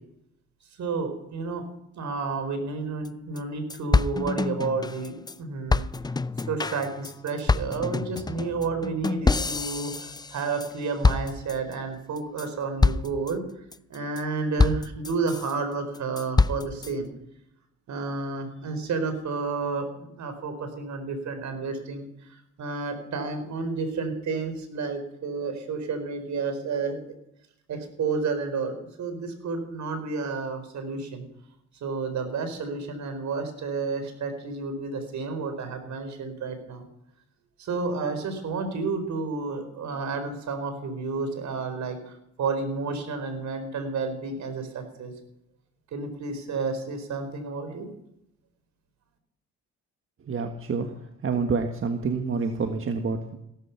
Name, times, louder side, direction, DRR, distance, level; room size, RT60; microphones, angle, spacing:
voice 1, 0.8-1.6 1.9-5.9 6.5-13.4 13.9-17.1 17.9-27.0 27.7-31.2 31.8-36.8 37.6-45.1 45.9-47.9, right 4 dB, 65° right, 8 dB, 4.4 m, -31 dB
sound 1, 3.0-3.1 3.4-3.5 3.7-5.4 5.7-10.7 11.0-11.7 12.2-12.5 12.8-13.3 13.7-14.2 14.6-15.5 15.9-16.9, left 3 dB, 15° left, 0.5 m, -26 dB
voice 2, 50.3-50.9 51.2-53.4, right 4 dB, 45° right, 6 dB, 1.6 m, -27 dB
17.5 x 13.5 x 5.8 m, 0.80 s
cardioid pair, 90°, 30 cm